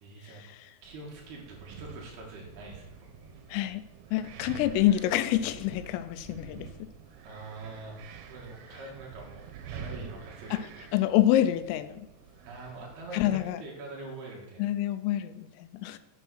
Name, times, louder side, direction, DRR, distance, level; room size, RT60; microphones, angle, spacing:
voice 1, 0.0-0.4 0.8-3.3 7.2-8.0 8.3-10.7 12.5-14.8, right 3 dB, 60° right, -1 dB, 3.3 m, -44 dB
Wind, 0.8-13.5, right 5 dB, 80° right, 3.6 m, -47 dB
voice 2, 3.5-3.8 4.1-6.7 10.5-10.7 10.9-12.1 13.1-13.6 14.6-16.0, left 13 dB, 85° left, 13 dB, 3.2 m, -27 dB
9.1 x 7.0 x 6.3 m, 0.92 s
omnidirectional pair, 5.9 m